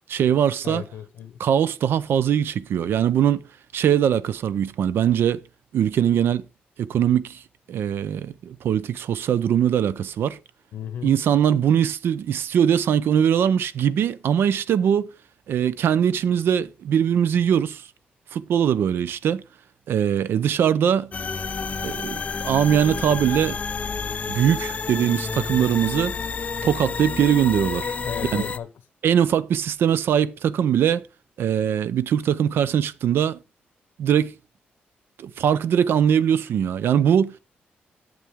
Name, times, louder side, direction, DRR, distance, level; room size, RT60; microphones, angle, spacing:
voice 1, 0.1-0.8 1.4-3.5 3.7-5.4 5.7-6.4 6.8-7.4 7.7-10.4 11.0-15.1 15.5-17.9 18.3-19.4 19.9-21.1 21.8-23.6 24.3-26.2 26.6-28.0 28.3-28.4 29.0-31.1 31.4-33.4 34.0-34.3 35.2-37.4, right 9 dB, 80° right, 0.5 m, -21 dB
voice 2, 0.6-1.4 10.7-11.2 28.0-28.7, left 9 dB, 90° left, 0.7 m, -34 dB
sound 1, 21.1-28.6, left 5 dB, 40° left, 0.5 m, -30 dB
8.4 x 7.5 x 3.6 m
cardioid pair, 105°, 4 cm